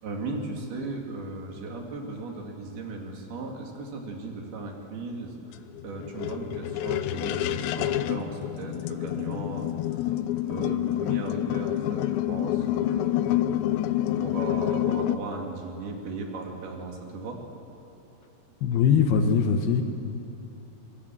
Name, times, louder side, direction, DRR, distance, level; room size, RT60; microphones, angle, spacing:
voice 1, 0.0-10.1 10.5-13.1 14.2-17.4, right 3 dB, 60° right, 1 dB, 4.3 m, -37 dB
sound 1, 5.5-15.2, left 13 dB, 80° left, 2.9 m, -28 dB
voice 2, 18.6-19.8, left 6 dB, 65° left, 5 dB, 2.9 m, -21 dB
24.5 x 23.5 x 7.7 m, 2.8 s
omnidirectional pair, 5.2 m